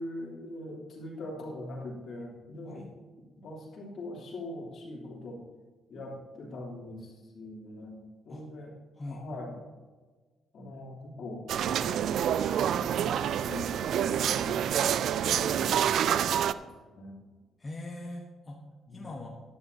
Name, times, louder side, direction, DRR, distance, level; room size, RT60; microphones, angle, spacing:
voice 1, 0.0-2.9 3.4-5.4 5.9-8.7 9.1-9.5 10.5-12.2 12.8-14.8 15.1-16.3 16.9-17.2 18.9-19.3, left 1 dB, 65° left, -2 dB, 3.1 m, -42 dB
voice 2, 2.6-3.0 8.3-8.5 9.0-9.3 17.6-18.6 18.9-19.3, left 2 dB, 25° left, -1 dB, 1.3 m, -41 dB
sound 1, 11.5-16.5, right 9 dB, 70° right, 0.3 m, -27 dB
13.0 x 10.5 x 2.8 m, 1.4 s
cardioid pair, 90°, 0 cm